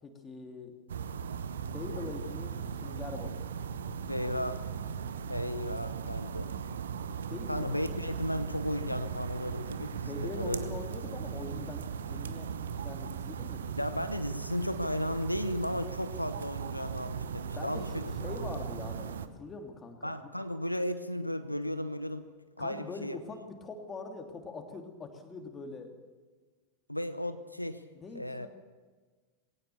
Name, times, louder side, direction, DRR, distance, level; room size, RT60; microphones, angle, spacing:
voice 1, 0.0-0.7 1.6-3.6 7.2-7.7 10.0-13.9 17.6-20.2 22.6-25.9 27.9-28.5, left 4 dB, 20° left, 4 dB, 3.0 m, -43 dB
sound 1, 0.9-19.3, right 7 dB, 65° right, 1.0 m, -38 dB
voice 2, 4.1-4.7 5.3-6.5 7.5-10.7 13.8-18.1 20.0-22.2 22.6-23.2 26.9-27.8 28.1-28.5, left 1 dB, 90° left, 11 dB, 0.8 m, -34 dB
21.0 x 18.0 x 7.0 m, 1.4 s
figure-of-eight pair, 90°, 0 cm